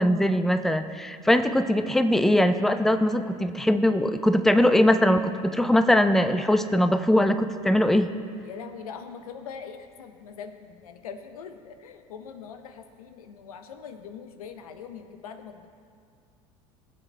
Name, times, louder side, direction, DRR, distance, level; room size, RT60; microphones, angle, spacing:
voice 1, 0.0-8.1, left 1 dB, ahead, 9 dB, 0.6 m, -21 dB
voice 2, 8.4-15.7, left 6 dB, 90° left, 7 dB, 0.8 m, -42 dB
18.5 x 7.5 x 3.3 m, 2.2 s
hypercardioid pair, 80°, 18 cm